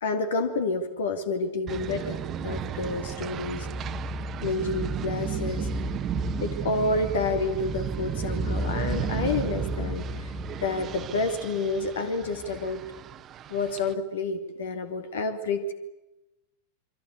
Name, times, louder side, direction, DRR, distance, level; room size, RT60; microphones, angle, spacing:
voice 1, 0.0-2.2 2.4-3.7 4.4-5.7 6.4-10.3 10.6-12.8 13.5-15.7, left 3 dB, 60° left, 8 dB, 2.5 m, -29 dB
sound 1, 1.7-13.9, right 5 dB, 30° right, 1.4 m, -32 dB
28.0 x 24.0 x 8.5 m, 0.99 s
figure-of-eight pair, 90°, 0 cm